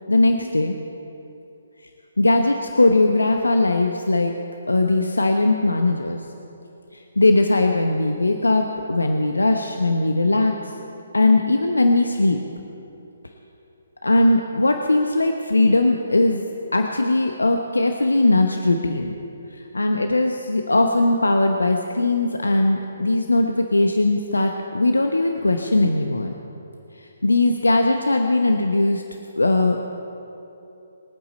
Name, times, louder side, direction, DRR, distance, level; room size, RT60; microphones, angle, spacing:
voice 1, 0.1-0.8 2.2-4.3 4.7-6.2 7.2-10.5 11.1-12.4 14.0-16.5 16.7-19.1 19.7-26.3 27.2-29.0 29.4-29.8, left 2 dB, 75° left, 4 dB, 1.0 m, -19 dB
24.5 x 8.8 x 4.2 m, 2.8 s
figure-of-eight pair, 135°, 0 cm